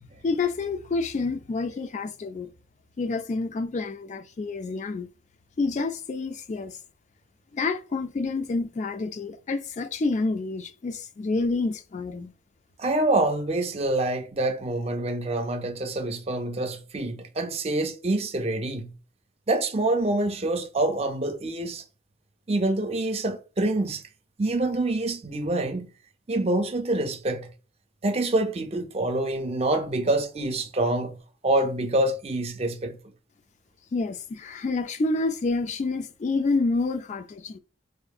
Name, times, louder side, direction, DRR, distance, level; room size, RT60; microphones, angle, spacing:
voice 1, 0.2-2.5 3.0-5.1 5.6-6.8 7.5-12.3 33.9-37.6, left 3 dB, 40° left, 0.3 m, -28 dB
voice 2, 12.8-18.9 19.5-21.8 22.5-24.0 24.4-25.9 26.3-27.5 28.0-31.2 31.4-33.0, right 2 dB, 35° right, 0.5 m, -26 dB
3.7 x 2.5 x 2.3 m
head